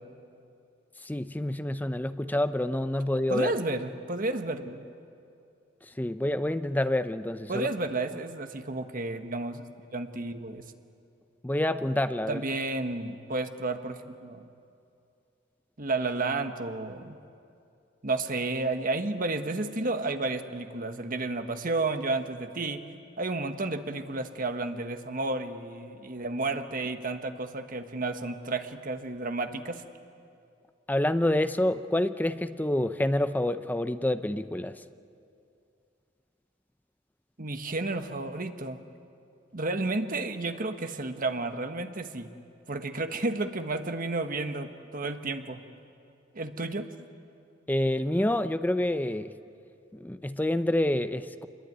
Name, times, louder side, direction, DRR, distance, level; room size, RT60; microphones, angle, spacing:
voice 1, 1.0-3.5 6.0-7.7 11.4-12.4 30.9-34.7 47.7-49.3 49.9-51.5, left 1 dB, 10° left, 11 dB, 0.6 m, -27 dB
voice 2, 3.3-4.9 7.5-9.6 9.9-10.6 12.3-14.5 15.8-17.2 18.0-22.8 23.2-29.8 37.4-38.8 39.5-42.3 42.7-45.6 46.3-46.9, right 2 dB, 50° right, 7 dB, 1.4 m, -32 dB
27.0 x 22.0 x 9.4 m, 2.5 s
head